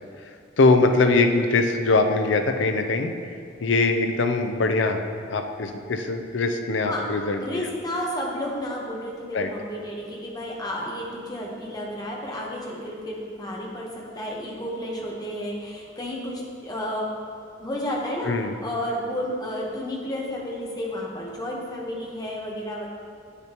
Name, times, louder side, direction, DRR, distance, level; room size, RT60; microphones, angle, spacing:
voice 1, 0.6-3.1 3.6-5.0 5.3-7.7 9.3-9.5 18.2-18.5, left 3 dB, 65° left, 6 dB, 0.5 m, -22 dB
voice 2, 7.4-17.1 17.6-18.3 18.6-22.9, equal, 20° left, -3 dB, 1.0 m, -31 dB
8.6 x 6.7 x 2.9 m, 2.2 s
head